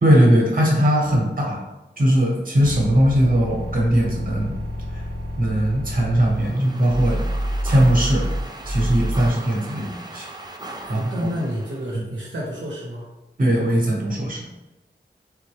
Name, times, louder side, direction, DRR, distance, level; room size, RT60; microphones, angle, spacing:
voice 1, 0.0-1.6 2.0-4.6 4.9-5.0 5.4-7.2 7.6-8.2 8.7-10.3 10.9-11.0 11.9-12.0 13.4-14.5, equal, 45° right, -2 dB, 1.0 m, -19 dB
sound 1, 2.6-9.3, equal, 80° left, 0.9 m, -28 dB
sound 2, 6.2-11.9, right 2 dB, 20° right, 0.4 m, -38 dB
voice 2, 10.8-13.1, equal, 80° right, -4 dB, 0.7 m, -29 dB
3.4 x 2.1 x 3.2 m, 1.0 s
wide cardioid pair, 70°, 19 cm